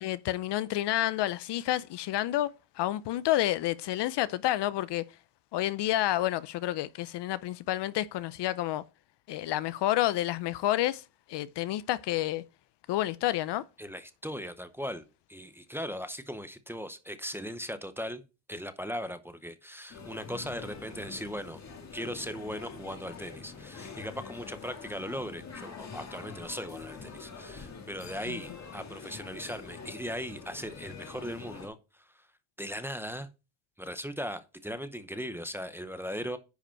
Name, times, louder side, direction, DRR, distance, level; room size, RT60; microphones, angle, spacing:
voice 1, 0.0-2.5 2.8-5.0 5.5-8.8 9.3-11.0 11.3-12.4 12.9-13.6 28.3-28.4, left 14 dB, 60° left, 0.6 m, -29 dB
voice 2, 13.8-18.2 18.5-21.6 21.9-32.3 32.6-33.3 33.8-36.4, equal, 5° right, 0.7 m, -38 dB
sound 1, 19.9-31.7, left 5 dB, 35° left, 1.7 m, -45 dB
10.5 x 5.0 x 4.4 m
cardioid pair, 130°, 48 cm